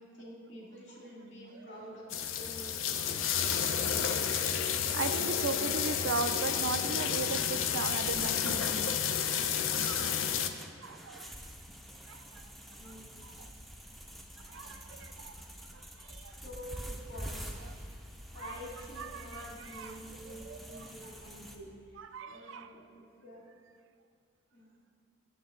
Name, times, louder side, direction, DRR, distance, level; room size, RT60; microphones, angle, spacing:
voice 1, 0.0-3.3 12.8-13.3 16.4-17.6 18.3-22.0 22.3-23.4 24.5-24.7, equal, 55° left, -4 dB, 2.1 m, -48 dB
sound 1, 2.1-10.5, left 8 dB, 75° left, 0.5 m, -31 dB
voice 2, 3.3-4.7 4.9-8.8 9.7-10.2 10.8-11.3 12.1-12.2 12.8-13.3 14.5-15.3 16.0-16.4 17.6-17.7 18.4-18.6 19.0-19.5 19.7-20.9 22.0-22.7, right 4 dB, 70° right, 10 dB, 0.4 m, -39 dB
sound 2, 8.0-21.6, equal, ahead, 0.4 m, -47 dB
8.8 x 7.0 x 3.8 m, 2.1 s
head